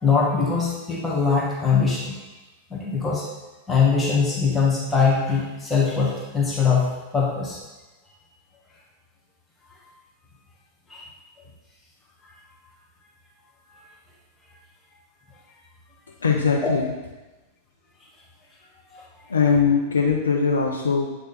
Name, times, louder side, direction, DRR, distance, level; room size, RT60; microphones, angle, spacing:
voice 1, 0.0-2.1 2.7-3.3 3.7-7.6 10.9-11.0 16.6-16.7 18.9-19.0, left 5 dB, 15° left, -4 dB, 1.6 m, -22 dB
voice 2, 16.2-16.9 19.3-21.2, left 5 dB, 90° left, 0 dB, 0.6 m, -21 dB
8.6 x 3.4 x 4.2 m, 1.1 s
hypercardioid pair, 100°, 0 cm